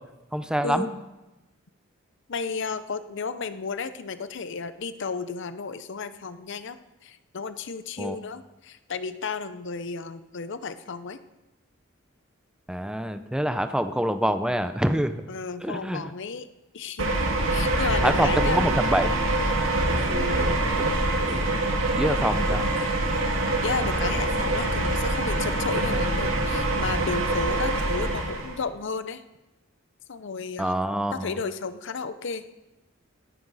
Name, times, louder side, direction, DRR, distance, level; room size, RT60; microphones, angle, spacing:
voice 1, 0.3-0.9 8.0-8.2 12.7-15.2 15.6-16.1 18.0-19.2 21.9-22.7 30.6-31.3, equal, 5° right, 10 dB, 0.6 m, -26 dB
voice 2, 2.3-6.8 7.0-11.2 15.3-16.5 16.7-17.2 17.5-18.7 19.9-20.4 23.6-29.2 30.1-30.7 31.1-32.4, left 4 dB, 65° left, 12 dB, 0.6 m, -33 dB
sound 1, 17.0-28.6, right 2 dB, 85° right, 1.9 m, -25 dB
sound 2, 19.3-25.7, equal, 40° right, 4.5 m, -40 dB
17.5 x 11.0 x 4.1 m, 1.1 s
head